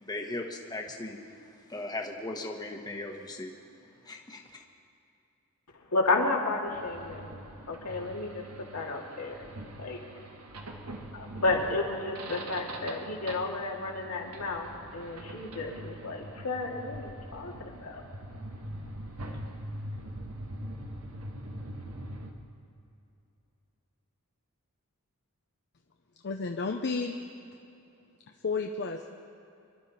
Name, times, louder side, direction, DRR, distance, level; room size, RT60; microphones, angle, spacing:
voice 1, 0.0-1.2 1.7-3.5 4.1-4.6, left 2 dB, 20° left, 1 dB, 1.2 m, -37 dB
voice 2, 5.9-7.3 7.7-9.5 9.8-10.0 11.1-18.0, left 3 dB, 85° left, -1 dB, 2.3 m, -32 dB
sound 1, 6.7-22.3, right 1 dB, 80° right, 1.4 m, -43 dB
voice 3, 26.2-27.2 28.4-29.1, left 4 dB, 50° left, 3 dB, 0.7 m, -32 dB
25.5 x 12.0 x 4.2 m, 2.7 s
head